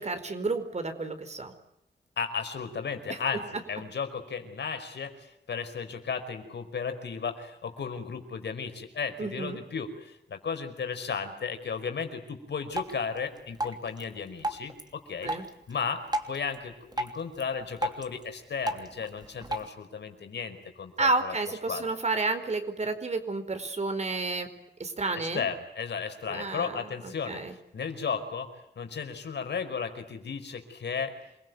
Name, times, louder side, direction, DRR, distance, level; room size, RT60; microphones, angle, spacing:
voice 1, 0.0-1.5 3.1-3.2 9.2-9.6 15.2-15.4 21.0-24.5 24.8-25.5 26.3-27.5, right 3 dB, 40° right, 9 dB, 4.5 m, -31 dB
voice 2, 2.2-15.3 15.7-21.3 21.7-21.8 25.2-28.5 28.8-31.1, left 6 dB, 80° left, 7 dB, 5.0 m, -34 dB
Drip, 12.7-19.7, right 1 dB, 25° right, 3.0 m, -37 dB
28.0 x 22.5 x 9.4 m, 0.83 s
wide cardioid pair, 145°, 18 cm